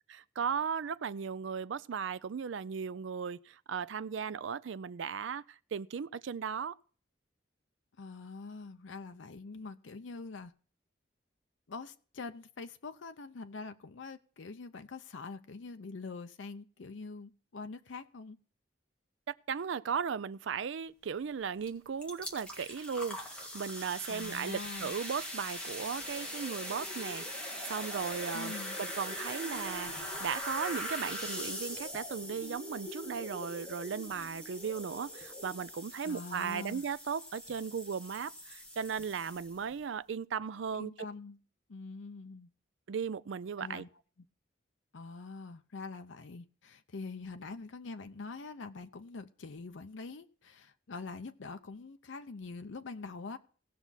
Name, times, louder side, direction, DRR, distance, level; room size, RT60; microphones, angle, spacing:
voice 1, 0.1-6.7 19.3-40.9 42.9-43.9, right 6 dB, 80° right, 0.4 m, -37 dB
voice 2, 8.0-10.5 11.7-18.4 24.1-25.0 28.3-28.8 36.0-36.8 40.8-41.4 41.7-42.5 43.6-43.9 44.9-53.4, left 4 dB, 80° left, 0.6 m, -44 dB
sound 1, 21.6-21.7 22.0-39.7, equal, 5° left, 1.8 m, -42 dB
sound 2, 25.8-35.8, left 1 dB, 20° left, 1.7 m, -48 dB
18.0 x 6.0 x 4.0 m
head